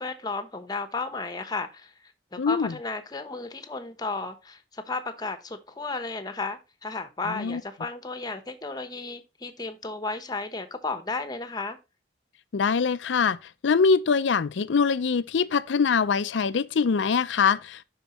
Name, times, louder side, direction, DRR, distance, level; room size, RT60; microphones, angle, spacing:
voice 1, 0.0-1.9 2.3-11.8, left 3 dB, 20° left, 0.9 m, -33 dB
voice 2, 2.4-2.7 7.3-7.6 12.5-13.4 13.6-17.8, left 5 dB, 75° left, 0.5 m, -23 dB
11.5 x 4.6 x 3.0 m
head